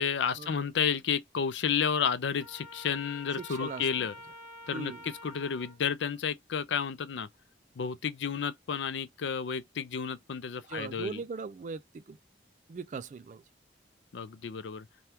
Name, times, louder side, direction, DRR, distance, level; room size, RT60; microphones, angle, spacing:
voice 1, 0.0-4.1 4.7-7.3 7.8-11.2 14.1-14.9, left 7 dB, 85° left, 0.4 m, -31 dB
Trumpet, 2.4-5.8, left 1 dB, ahead, 1.1 m, -48 dB
voice 2, 3.4-4.1 4.7-5.0 10.7-12.2 12.7-13.4, right 4 dB, 40° right, 0.3 m, -40 dB
2.8 x 2.3 x 3.4 m
head